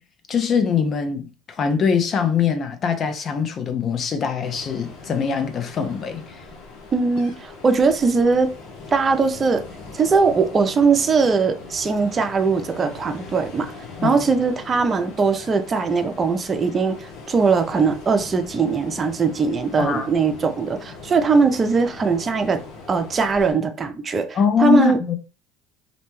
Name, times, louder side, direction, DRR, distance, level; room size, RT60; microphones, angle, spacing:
voice 1, 0.3-1.3 1.6-6.2 14.0-14.3 19.8-20.1 24.3-25.2, left 7 dB, 45° left, 0.5 m, -22 dB
Ocean, 4.4-23.5, left 4 dB, 70° left, 0.8 m, -40 dB
voice 2, 6.9-8.5 8.9-9.6 9.9-13.7 14.0-22.6 22.9-25.0, right 4 dB, 30° right, 0.4 m, -20 dB
2.6 x 2.1 x 3.0 m
supercardioid pair, 90°, 0 cm